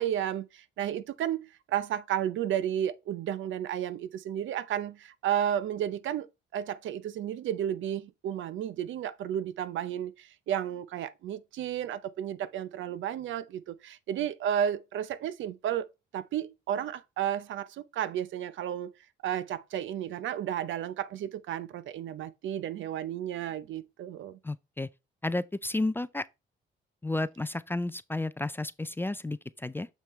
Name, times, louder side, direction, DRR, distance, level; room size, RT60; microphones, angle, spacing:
voice 1, 0.0-6.3 6.5-15.9 16.1-18.9 19.2-24.4, right 10 dB, 75° right, 0.7 m, -32 dB
voice 2, 24.4-24.9 25.2-26.2 27.0-29.9, left 2 dB, 10° left, 0.4 m, -32 dB
7.4 x 5.4 x 3.1 m
cardioid pair, 90°, 20 cm